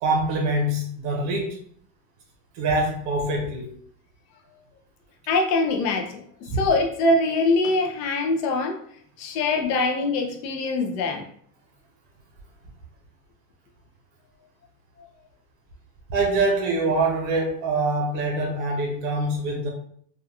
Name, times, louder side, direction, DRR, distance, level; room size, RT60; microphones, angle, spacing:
voice 1, 0.0-1.6 2.5-3.7 6.5-6.6 16.1-19.7, right 2 dB, 50° right, 0 dB, 0.7 m, -24 dB
voice 2, 5.3-6.2 6.5-8.8 9.2-11.2, left 2 dB, 40° left, 3 dB, 0.4 m, -23 dB
2.7 x 2.3 x 2.3 m, 0.62 s
supercardioid pair, 140°, 47 cm